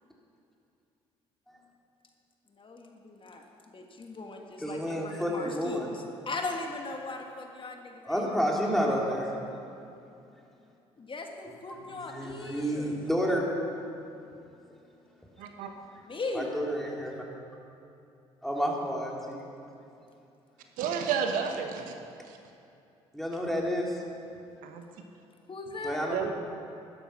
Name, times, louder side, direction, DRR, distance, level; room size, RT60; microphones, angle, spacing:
voice 1, 2.6-8.9 11.0-13.0 16.0-16.5 25.5-26.1, left 3 dB, 35° left, 2 dB, 1.7 m, -39 dB
voice 2, 4.6-5.9 8.1-9.3 11.9-13.5 16.3-17.2 18.4-19.4 23.1-24.0 25.8-26.2, equal, ahead, -2 dB, 3.2 m, -30 dB
voice 3, 15.4-15.7 20.8-21.9 22.3-22.4 24.6-24.8 26.1-26.3, right 7 dB, 70° right, 5 dB, 1.1 m, -31 dB
12.5 x 10.5 x 6.1 m, 2.7 s
hypercardioid pair, 50°, 15 cm